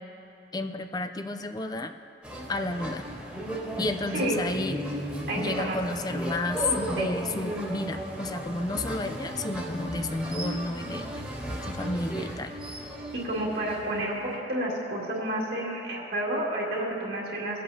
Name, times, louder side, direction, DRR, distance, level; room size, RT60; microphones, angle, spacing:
voice 1, 0.5-1.9 2.5-3.1 3.8-4.8 5.4-11.1 11.6-12.6, left 2 dB, 20° left, 7 dB, 0.4 m, -31 dB
sound 1, 2.2-14.4, equal, 5° right, 1.5 m, -35 dB
voice 2, 5.3-5.8 7.0-7.1 13.2-17.6, right 1 dB, 60° right, -5 dB, 2.1 m, -30 dB
24.5 x 8.5 x 2.8 m, 3.0 s
head